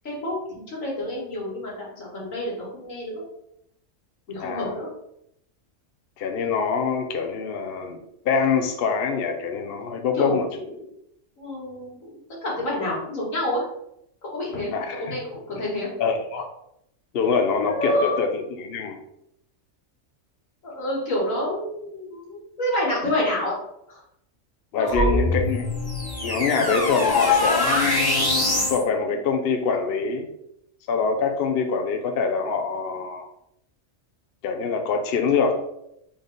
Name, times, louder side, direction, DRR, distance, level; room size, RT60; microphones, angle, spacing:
voice 1, 0.0-0.4 0.7-3.2 4.3-4.9 10.1-10.9 11.4-13.6 14.2-15.9 17.7-18.2 20.6-23.5 23.9-24.0 24.8-25.5, left 1 dB, 75° left, -5 dB, 2.1 m, -28 dB
voice 2, 4.4-4.8 6.2-10.5 14.7-15.2 16.0-16.5 17.1-19.0 24.7-25.7 26.2-30.3 30.9-33.3 34.4-35.6, left 5 dB, 60° left, 4 dB, 0.7 m, -25 dB
sound 1, 24.9-28.8, left 2 dB, 20° left, 0.8 m, -23 dB
3.9 x 3.4 x 3.9 m, 0.77 s
omnidirectional pair, 1.4 m